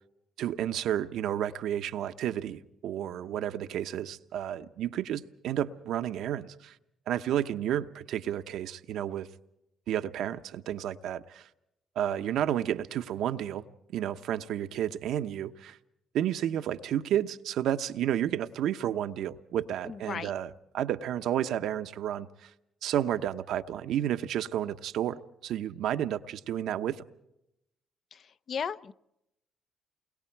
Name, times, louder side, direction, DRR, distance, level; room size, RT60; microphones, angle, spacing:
voice 1, 0.4-6.7 7.1-9.3 9.9-11.5 12.0-13.6 13.9-15.8 16.1-22.5 22.8-27.0, right 11 dB, 80° right, 0.9 m, -31 dB
voice 2, 19.8-20.3 28.1-28.2 28.5-28.9, left 6 dB, 55° left, 0.7 m, -35 dB
29.0 x 22.0 x 4.6 m
cardioid pair, 90°, 0 cm